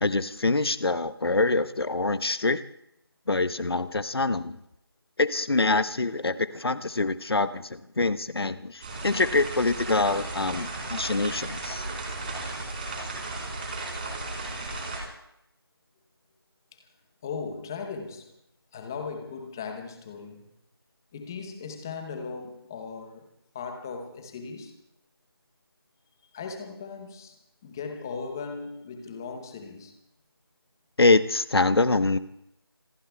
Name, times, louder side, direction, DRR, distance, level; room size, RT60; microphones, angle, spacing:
voice 1, 0.0-2.6 3.3-4.6 5.2-11.8 31.0-32.2, left 3 dB, 70° left, 0.9 m, -25 dB
sound 1, 8.8-15.0, right 2 dB, 25° right, 4.0 m, -35 dB
voice 2, 17.2-18.3 18.7-20.5 21.1-23.3 23.5-24.8 26.3-27.4 27.6-29.9, left 5 dB, 10° left, 0.8 m, -38 dB
26.5 x 22.5 x 2.3 m
figure-of-eight pair, 170°, 13 cm